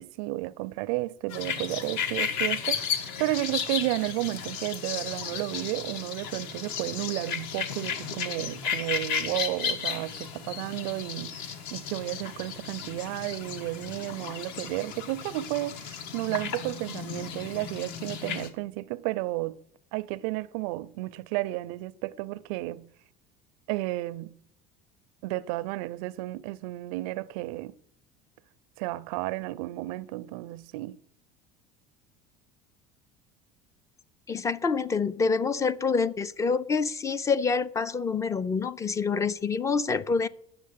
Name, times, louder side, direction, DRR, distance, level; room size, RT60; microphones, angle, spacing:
voice 1, 0.0-19.6 19.9-22.9 23.7-24.3 25.2-27.8 28.8-31.0, right 18 dB, 90° right, 0.5 m, -32 dB
sound 1, 1.3-18.5, left 7 dB, 70° left, 1.3 m, -34 dB
voice 2, 34.3-40.3, left 5 dB, 20° left, 0.3 m, -27 dB
9.5 x 7.0 x 8.3 m
cardioid pair, 150°, 18 cm